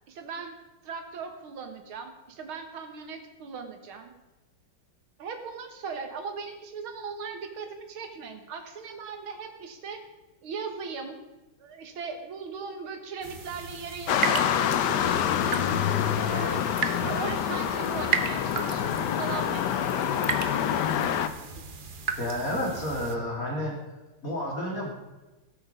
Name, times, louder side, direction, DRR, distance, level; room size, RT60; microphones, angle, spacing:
voice 1, 0.1-0.6 0.8-4.1 5.2-10.0 10.4-11.2 11.6-15.5 16.0-20.1, right 5 dB, 80° right, 6 dB, 2.2 m, -38 dB
sound 1, 13.2-23.2, right 5 dB, 55° right, 0.5 m, -35 dB
sound 2, 14.1-21.3, left 9 dB, 65° left, 1.2 m, -26 dB
voice 2, 22.2-23.8 24.2-24.9, left 1 dB, 40° left, -2 dB, 3.4 m, -30 dB
17.5 x 7.9 x 5.1 m, 1.1 s
omnidirectional pair, 2.3 m